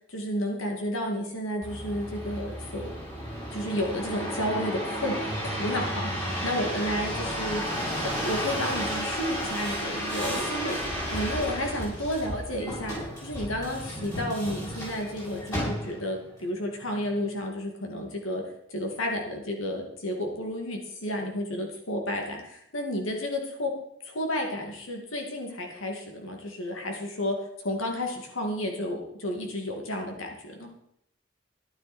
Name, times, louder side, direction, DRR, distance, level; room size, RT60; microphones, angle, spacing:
voice 1, 0.1-2.9 3.5-5.2 5.4-7.6 8.2-10.7 11.1-13.0 13.2-18.4 18.7-23.7 24.1-27.4 27.6-30.7, left 1 dB, 80° left, 1 dB, 2.4 m, -31 dB
sound 1, 1.6-16.2 16.8-17.3, equal, 15° left, 6.6 m, -33 dB
13.5 x 11.5 x 4.4 m, 0.73 s
head